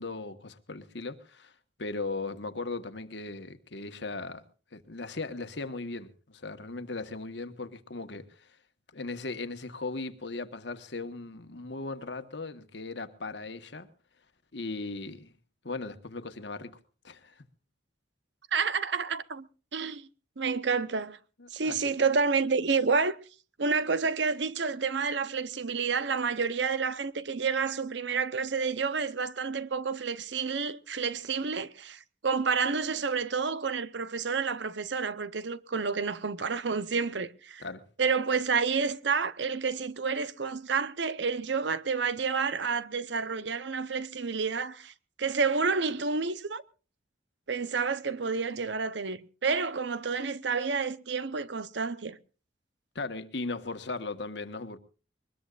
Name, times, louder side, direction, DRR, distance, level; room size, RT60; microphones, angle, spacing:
voice 1, 0.0-1.5 1.8-4.4 4.7-8.6 8.9-13.9 14.5-15.3 15.6-16.8 17.0-17.4 21.4-21.8 37.6-37.8 52.9-54.8, left 3 dB, 70° left, 1.4 m, -38 dB
voice 2, 18.5-19.5 19.7-20.1 20.4-21.2 21.5-23.2 23.6-37.6 38.0-44.9 45.2-46.6 47.5-52.2, right 5 dB, 75° right, 0.8 m, -29 dB
22.5 x 20.5 x 2.5 m
head